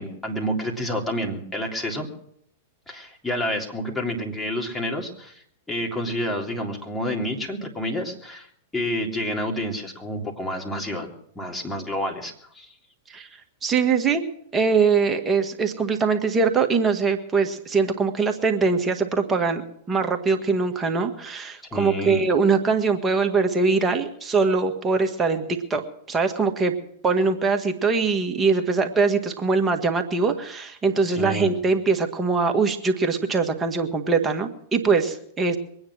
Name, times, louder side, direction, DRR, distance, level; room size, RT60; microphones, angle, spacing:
voice 1, 0.0-2.1 2.9-8.5 8.7-12.7 21.7-22.3 31.1-31.5, equal, 10° left, 0 dB, 3.4 m, -29 dB
voice 2, 13.6-14.2 14.5-19.6 19.9-26.7 27.0-35.6, right 4 dB, 20° right, 5 dB, 1.7 m, -22 dB
23.0 x 9.6 x 6.3 m, 0.68 s
hypercardioid pair, 110°, 0 cm